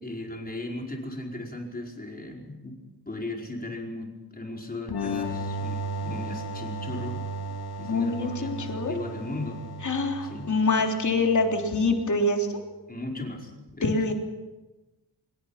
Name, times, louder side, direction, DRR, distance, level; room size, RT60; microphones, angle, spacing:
voice 1, 0.0-2.8 3.0-7.2 7.8-9.7 10.2-10.5 12.9-13.9, left 2 dB, 25° left, 0 dB, 5.1 m, -37 dB
sound 1, 4.9-12.3, right 1 dB, 70° left, 3.3 m, -35 dB
voice 2, 7.8-8.9 9.8-12.5 13.8-14.1, left 3 dB, 50° left, 2 dB, 3.4 m, -25 dB
26.0 x 22.0 x 5.9 m, 1.1 s
wide cardioid pair, 120°, 39 cm